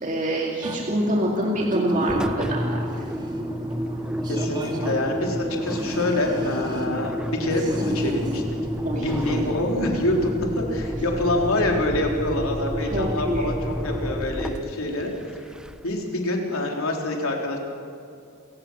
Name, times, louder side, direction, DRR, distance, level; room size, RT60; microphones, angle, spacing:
voice 1, 0.0-2.8 8.8-9.5 12.8-13.6, right 1 dB, 35° right, -1 dB, 2.2 m, -26 dB
sound 1, 0.6-10.3, equal, 20° right, 2.0 m, -33 dB
Engine, 2.0-16.0, equal, 5° right, 0.6 m, -30 dB
voice 2, 4.2-8.4 9.0-15.1 15.8-17.6, left 1 dB, 75° left, 1 dB, 3.6 m, -26 dB
28.5 x 16.5 x 6.2 m, 2.5 s
head